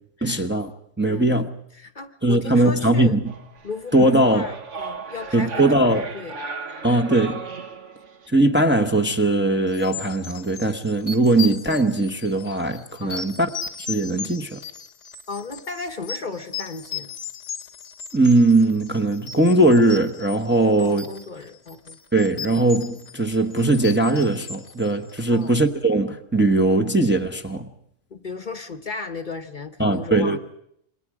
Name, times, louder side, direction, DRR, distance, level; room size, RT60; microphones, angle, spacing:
voice 1, 0.2-0.7 1.0-1.5 2.2-3.2 3.9-4.5 5.3-6.1 6.8-7.5 8.3-13.5 13.9-14.6 18.1-21.1 22.1-27.7 29.8-30.4, right 2 dB, 10° right, 1.0 m, -20 dB
voice 2, 1.0-1.5 1.7-3.2 3.6-6.4 13.0-13.3 15.3-17.1 20.8-22.0 25.3-25.6 28.1-30.4, left 4 dB, 45° left, 1.1 m, -35 dB
sound 1, 3.3-8.3, right 4 dB, 85° right, 1.8 m, -36 dB
sound 2, 9.7-25.6, left 6 dB, 70° left, 1.4 m, -37 dB
27.5 x 21.5 x 4.9 m
omnidirectional pair, 1.2 m